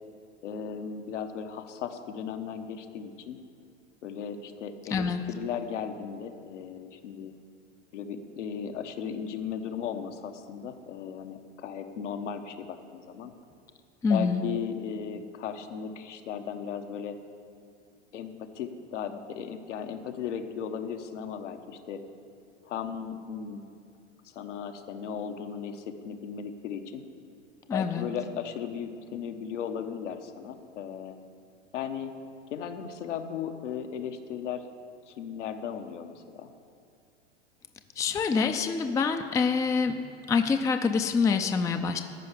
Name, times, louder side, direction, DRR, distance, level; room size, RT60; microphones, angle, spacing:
voice 1, 0.4-3.4 4.0-7.3 7.9-13.3 14.1-17.2 18.1-22.0 22.6-23.6 24.2-27.0 27.7-31.2 31.7-32.1 32.5-34.6 35.1-36.5, left 7 dB, 75° left, 6 dB, 1.2 m, -36 dB
voice 2, 14.0-14.4 27.7-28.1 38.0-40.0 40.3-42.0, left 5 dB, 10° left, 7 dB, 0.4 m, -26 dB
14.0 x 5.6 x 8.5 m, 2.4 s
hypercardioid pair, 110°, 36 cm